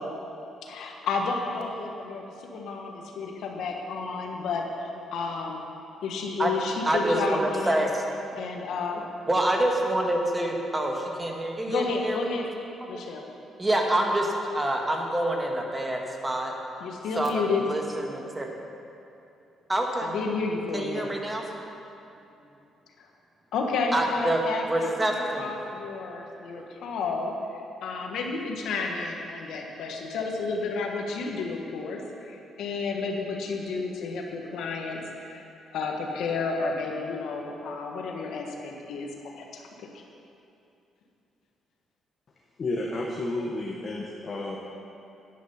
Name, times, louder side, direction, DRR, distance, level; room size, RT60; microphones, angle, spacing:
voice 1, 0.6-5.7 6.0-7.8 8.4-9.0 11.7-12.5 12.9-13.2 16.8-17.6 20.0-21.1 23.5-24.9 25.1-32.0 32.2-35.0 35.3-35.4 35.7-39.1 39.4-39.6, left 4 dB, 80° left, 1 dB, 1.5 m, -31 dB
voice 2, 6.8-8.0 8.3-8.5 9.3-12.3 13.6-16.5 17.1-18.5 19.7-20.1 20.7-21.6 23.9-24.4 24.7-25.5 26.3-26.7, right 1 dB, 20° right, 1 dB, 1.6 m, -27 dB
voice 3, 42.6-44.6, left 2 dB, 45° left, -1 dB, 1.2 m, -31 dB
10.5 x 10.0 x 5.6 m, 2.7 s
cardioid pair, 90°, 0 cm